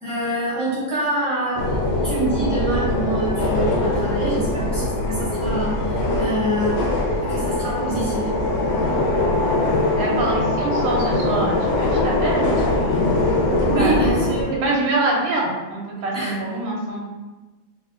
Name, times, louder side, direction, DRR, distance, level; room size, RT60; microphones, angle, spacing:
voice 1, 0.0-6.8 7.2-8.3 13.6-14.8 16.1-16.3, right 2 dB, 5° left, -11 dB, 0.7 m, -26 dB
sound 1, 1.6-14.4, left 2 dB, 70° left, 1.0 m, -22 dB
voice 2, 9.9-13.0 13.8-14.0 14.6-17.0, right 2 dB, 70° right, -3 dB, 1.3 m, -25 dB
3.5 x 2.6 x 2.5 m, 1.2 s
omnidirectional pair, 2.4 m